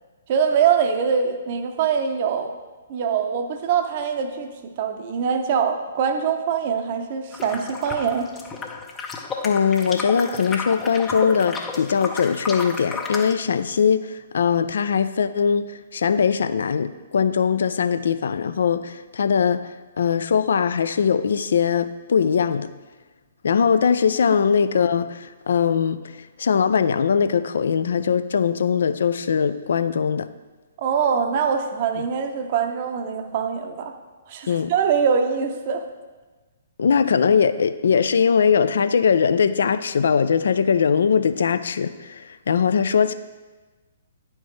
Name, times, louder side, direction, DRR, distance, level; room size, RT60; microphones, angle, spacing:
voice 1, 0.3-2.6 2.9-4.5 4.8-8.3 30.8-33.9 34.3-35.8, right 7 dB, 45° right, 6 dB, 0.7 m, -23 dB
sound 1, 7.3-13.3, left 4 dB, 15° left, 0.5 m, -32 dB
voice 2, 9.4-22.7 23.4-26.0 26.4-30.3 34.5-34.7 36.8-43.1, left 6 dB, 65° left, 12 dB, 0.3 m, -21 dB
9.8 x 4.4 x 3.2 m, 1.3 s
figure-of-eight pair, 125°, 0 cm